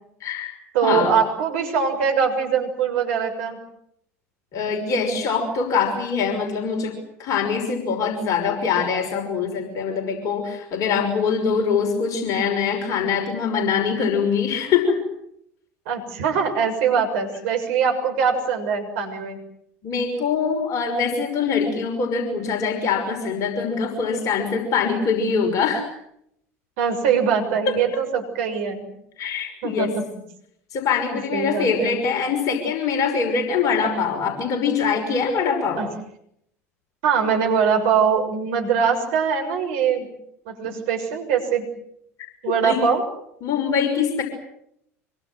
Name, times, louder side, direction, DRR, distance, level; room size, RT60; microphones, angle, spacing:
voice 1, 0.2-0.5 0.8-1.1 4.5-15.0 19.8-25.9 27.7-27.8 29.2-29.9 30.7-35.9 42.6-42.8 43.4-44.2, left 5 dB, 45° left, 4 dB, 5.9 m, -23 dB
voice 2, 0.7-3.6 15.8-19.4 26.8-28.9 29.6-30.0 31.1-32.0 35.8-35.9 37.0-40.1 40.4-41.7 42.4-43.0, right 6 dB, 65° right, 4 dB, 6.6 m, -22 dB
26.5 x 24.0 x 7.8 m, 0.74 s
figure-of-eight pair, 70°, 8 cm